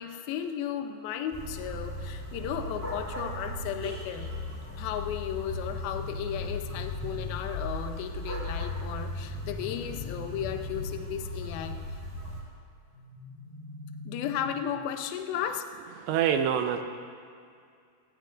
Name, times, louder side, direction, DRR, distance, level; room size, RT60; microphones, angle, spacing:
voice 1, 0.0-4.3 4.8-11.8 14.1-15.6, left 9 dB, 85° left, 6 dB, 2.1 m, -35 dB
sound 1, 1.3-12.4, left 1 dB, 5° left, 4.0 m, -37 dB
sound 2, 5.5-7.5 9.2-11.2 12.9-14.9, left 2 dB, 60° left, 3.8 m, -45 dB
voice 2, 16.0-16.8, right 8 dB, 80° right, 6 dB, 2.8 m, -25 dB
27.0 x 15.5 x 2.6 m, 2.3 s
omnidirectional pair, 5.3 m